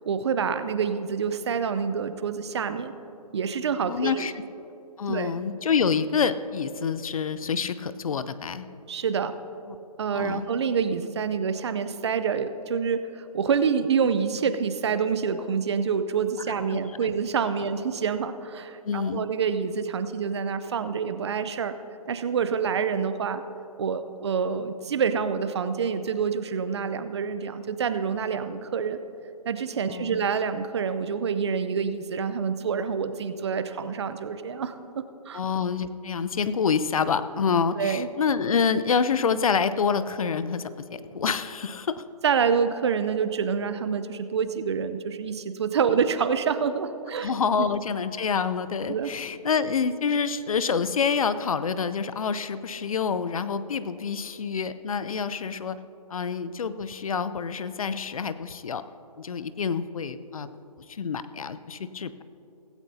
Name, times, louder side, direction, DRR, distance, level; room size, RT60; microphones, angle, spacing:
voice 1, 0.0-2.9 3.3-4.3 5.1-5.3 8.9-9.3 10.0-21.7 22.1-23.4 23.8-29.0 29.4-35.4 37.8-38.1 42.2-47.3 47.6-47.7 48.9-49.1, right 6 dB, 45° right, 11 dB, 0.6 m, -27 dB
voice 2, 3.8-4.3 5.0-8.7 9.7-9.8 10.1-10.5 16.7-17.1 18.8-19.2 29.9-30.2 35.3-42.0 47.2-55.8 56.1-58.8 59.2-60.5 60.9-62.2, left 6 dB, 60° left, 14 dB, 0.6 m, -27 dB
16.5 x 16.5 x 2.8 m, 2.9 s
figure-of-eight pair, 150°, 20 cm